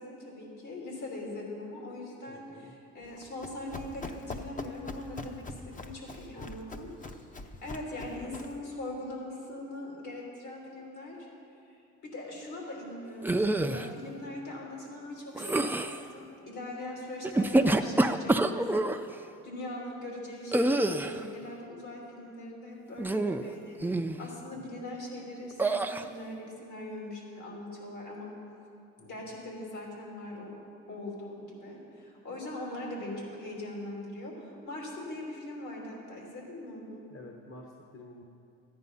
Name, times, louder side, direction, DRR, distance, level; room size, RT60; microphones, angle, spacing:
voice 1, 0.0-7.2 7.6-11.3 11.7-11.8 12.0-18.6 19.0-23.8 24.2-28.3 29.0-30.6 30.9-37.0, left 1 dB, 70° left, -2 dB, 3.3 m, -41 dB
voice 2, 2.3-2.7 24.5-24.6 29.0-29.3 37.1-38.2, left 2 dB, 40° left, 2 dB, 1.2 m, -50 dB
Run, 3.0-8.6, left 3 dB, 25° left, 0.8 m, -43 dB
sound 1, 13.2-13.9 15.4-16.0 17.2-19.0 20.5-21.2 23.0-23.5 23.8-24.2 25.6-26.0, right 2 dB, 5° right, 0.4 m, -26 dB
13.0 x 9.5 x 5.5 m, 2.6 s
cardioid pair, 90°, 30 cm